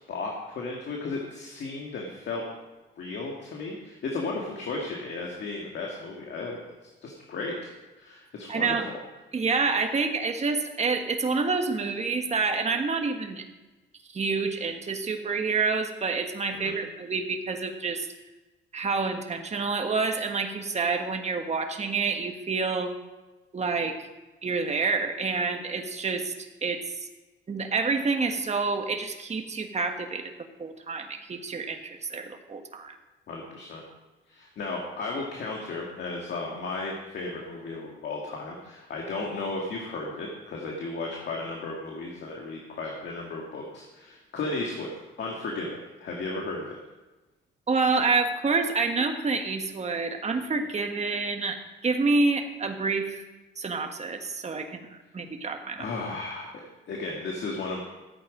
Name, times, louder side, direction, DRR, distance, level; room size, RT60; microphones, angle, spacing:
voice 1, 0.1-2.4 3.0-6.6 7.0-7.6 8.0-8.8 16.6-16.7 33.3-33.8 34.3-44.9 45.2-46.8 55.8-57.8, left 3 dB, 60° left, -1 dB, 2.1 m, -34 dB
voice 2, 8.5-8.9 9.3-13.5 14.1-18.1 18.7-22.9 23.5-24.1 24.4-27.1 27.5-30.3 30.6-32.9 47.7-53.2 53.6-55.9, right 4 dB, 35° right, 5 dB, 1.5 m, -28 dB
14.0 x 8.6 x 5.0 m, 1.1 s
cardioid pair, 90°, 20 cm